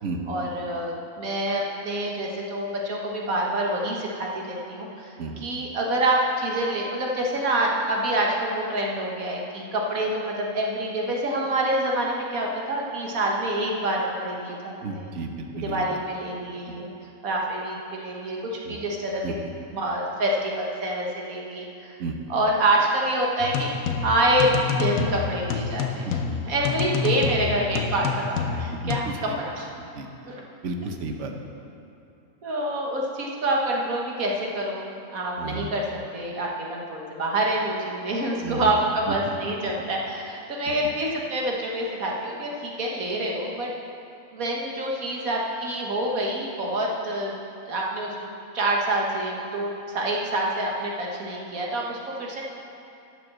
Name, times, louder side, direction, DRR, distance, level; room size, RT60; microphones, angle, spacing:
voice 1, 0.3-14.7 15.6-16.9 17.2-19.2 19.7-22.0 22.3-23.7 24.0-26.2 26.5-29.7 30.3-30.4 32.4-35.9 36.1-43.7 44.3-47.4 47.7-48.2 48.5-52.4, right 1 dB, 80° right, -2 dB, 1.8 m, -27 dB
voice 2, 14.8-15.8 18.7-18.8 19.2-19.3 22.0-22.2 26.0-26.4 28.7-29.0 29.3-29.4 29.9-30.1 30.6-31.3 35.4-35.7 38.4-38.7 39.8-39.9, right 3 dB, 60° right, 4 dB, 1.2 m, -33 dB
sound 1, 23.4-29.0, left 6 dB, 85° left, 1.2 m, -28 dB
11.0 x 6.1 x 7.5 m, 2.7 s
omnidirectional pair, 1.4 m